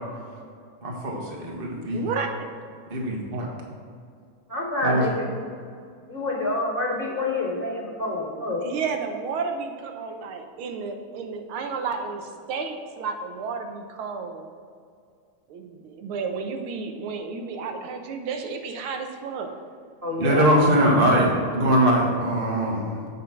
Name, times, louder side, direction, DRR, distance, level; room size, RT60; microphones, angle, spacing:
voice 1, 0.8-2.1 2.9-3.5 4.8-5.0 20.2-23.1, right 1 dB, 30° right, -1 dB, 1.4 m, -22 dB
voice 2, 1.9-2.5 8.6-14.5 15.5-19.6, right 5 dB, 85° right, 5 dB, 1.7 m, -32 dB
voice 3, 4.5-5.3 6.1-8.6 20.0-20.5, left 2 dB, 10° right, -5 dB, 2.3 m, -27 dB
7.9 x 5.5 x 5.9 m, 2.3 s
omnidirectional pair, 2.3 m